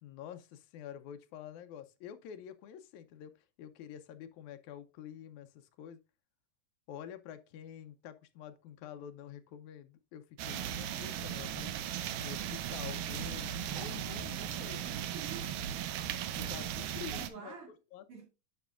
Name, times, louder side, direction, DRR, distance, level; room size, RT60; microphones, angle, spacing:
voice 1, 0.0-3.3 3.6-6.0 6.9-11.7 12.2-14.9 16.3-17.5 17.9-18.1, left 9 dB, 75° left, 1.9 m, -48 dB
sound 1, 10.4-17.3, right 10 dB, 85° right, 2.3 m, -37 dB
voice 2, 14.8-15.6 17.1-17.7 18.1-18.3, right 5 dB, 50° right, 2.8 m, -49 dB
9.2 x 5.8 x 2.4 m
omnidirectional pair, 3.7 m